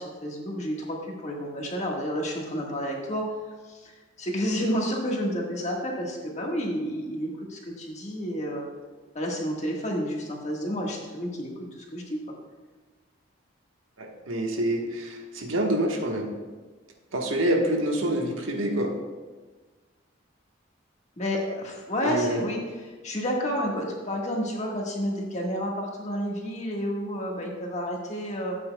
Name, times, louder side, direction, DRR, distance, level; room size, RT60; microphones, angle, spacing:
voice 1, 0.0-3.4 3.7-8.7 9.1-12.2 21.2-22.6 23.0-28.6, equal, 35° left, -1 dB, 1.5 m, -30 dB
voice 2, 14.0-16.3 17.1-18.9 22.0-22.5, right 1 dB, 90° right, 1 dB, 1.3 m, -26 dB
13.0 x 8.5 x 2.3 m, 1.4 s
head